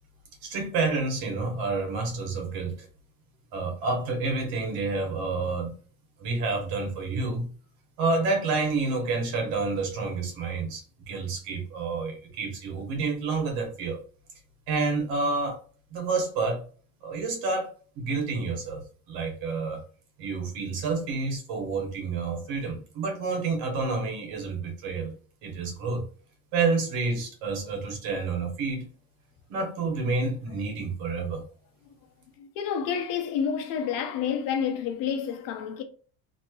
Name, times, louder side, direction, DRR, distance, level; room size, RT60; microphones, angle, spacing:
voice 1, 0.4-2.9 3.5-5.7 6.2-7.5 8.0-14.0 14.7-15.6 15.9-16.6 17.0-17.7 18.0-19.8 20.2-25.1 25.4-26.0 26.5-28.8 29.5-31.4, right 3 dB, 75° right, 1.2 m, -29 dB
voice 2, 32.4-35.8, left 7 dB, 65° left, 0.7 m, -29 dB
3.0 x 2.9 x 2.4 m
cardioid pair, 155°, 36 cm